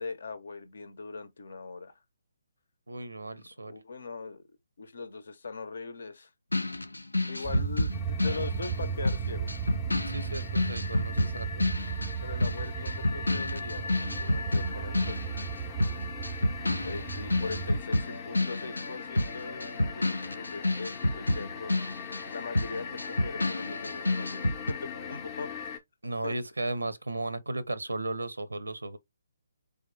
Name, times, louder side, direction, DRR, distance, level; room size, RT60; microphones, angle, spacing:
voice 1, 0.0-1.9 3.3-4.5 4.8-6.3 7.3-9.5 12.2-15.3 16.8-21.9 22.3-25.5 26.0-26.4, left 4 dB, 65° left, 0.8 m, -40 dB
voice 2, 2.9-3.7 7.4-7.6 10.1-11.6 26.0-29.0, right 2 dB, 85° right, 0.5 m, -35 dB
sound 1, 6.5-15.5 15.8-24.7, left 1 dB, 90° left, 0.4 m, -30 dB
sound 2, 7.4-17.8, right 8 dB, 15° right, 0.4 m, -35 dB
sound 3, 7.9-25.8, left 6 dB, 25° left, 0.6 m, -41 dB
3.6 x 3.5 x 3.3 m
figure-of-eight pair, 140°, 0 cm